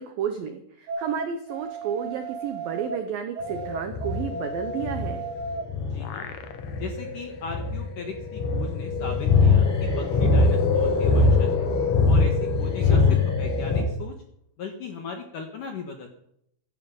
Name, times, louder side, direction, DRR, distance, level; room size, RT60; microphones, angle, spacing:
voice 1, 0.0-5.3 12.7-13.2, right 7 dB, 85° right, 8 dB, 2.0 m, -32 dB
sound 1, 0.9-3.0 3.4-5.7, right 3 dB, 55° right, 2.9 m, -34 dB
sound 2, 3.4-13.8, left 3 dB, 45° left, 7.4 m, -22 dB
sound 3, 5.4-7.0 7.4-7.5 8.8-13.6, left 8 dB, 85° left, 1.7 m, -36 dB
voice 2, 5.8-6.4 6.8-11.7 12.1-14.2 14.6-16.1, left 5 dB, 65° left, 4 dB, 2.1 m, -38 dB
16.0 x 13.5 x 5.4 m, 0.72 s
omnidirectional pair, 5.8 m